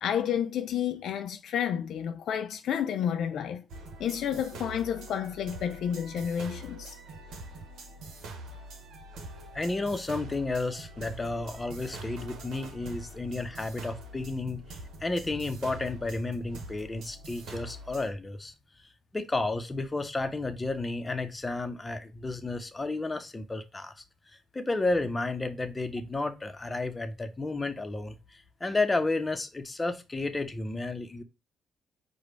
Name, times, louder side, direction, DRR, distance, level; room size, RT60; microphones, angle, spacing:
voice 1, 0.0-3.6 4.0-7.0, left 9 dB, 70° left, 0.3 m, -30 dB
sound 1, 3.7-18.1, right 2 dB, 75° right, 0.9 m, -44 dB
voice 2, 9.5-18.5 19.1-23.9 24.3-31.2, left 2 dB, 25° left, 0.8 m, -32 dB
4.9 x 2.3 x 4.4 m
supercardioid pair, 60°, 0 cm